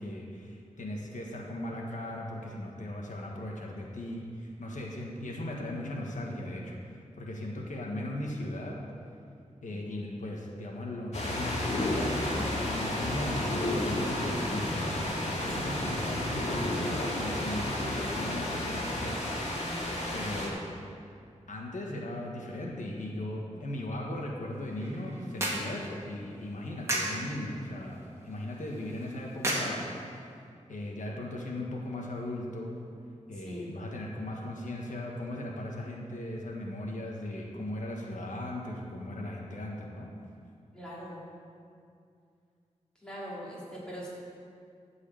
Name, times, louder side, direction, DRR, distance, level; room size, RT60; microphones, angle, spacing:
voice 1, 0.0-8.8 9.6-15.0 15.4-19.2 20.1-20.6 21.5-29.9 30.7-32.7 33.3-40.1, left 1 dB, 90° left, -1 dB, 1.4 m, -37 dB
voice 2, 9.7-10.1 15.6-16.0 33.4-33.8 40.7-41.2 43.0-44.1, equal, 5° left, -7 dB, 3.1 m, -43 dB
sound 1, 11.1-20.5, left 1 dB, 60° left, 2.5 m, -32 dB
sound 2, 24.5-30.4, right 1 dB, 20° right, 2.0 m, -37 dB
12.0 x 4.8 x 8.4 m, 2.4 s
wide cardioid pair, 120°, 13 cm